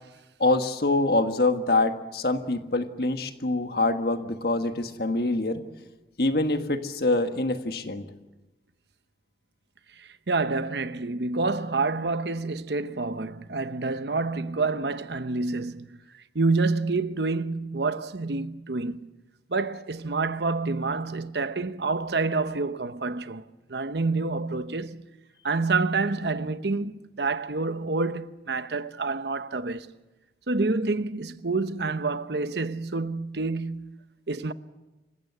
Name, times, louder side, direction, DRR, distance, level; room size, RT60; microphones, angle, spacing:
voice 1, 0.4-5.6 6.2-8.0, left 2 dB, 60° left, 1.6 m, -25 dB
voice 2, 10.0-16.0 16.3-19.1 19.5-23.4 23.7-25.1 25.4-29.9 30.5-34.0 34.3-34.5, right 3 dB, 70° right, 0.9 m, -28 dB
27.0 x 16.0 x 8.2 m
head